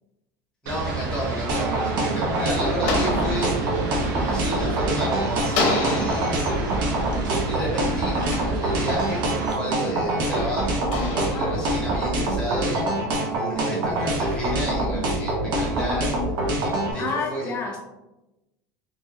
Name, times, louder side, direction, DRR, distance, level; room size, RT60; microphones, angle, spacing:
voice 1, 0.6-3.5 4.0-6.8 7.3-12.9 13.3-16.1 16.9-17.5, right 1 dB, 10° left, -6 dB, 1.0 m, -31 dB
sound 1, 0.7-9.5, right 3 dB, 90° right, 0.6 m, -31 dB
sound 2, 1.3-5.0 5.5-9.3 9.9-12.5, left 3 dB, 60° left, 0.7 m, -32 dB
sound 3, 1.5-16.9, right 1 dB, 45° right, 0.6 m, -25 dB
voice 2, 11.3-11.6 17.0-17.8, left 4 dB, 25° left, 1 dB, 0.5 m, -29 dB
2.6 x 2.4 x 2.8 m, 0.99 s
supercardioid pair, 155°, 10 cm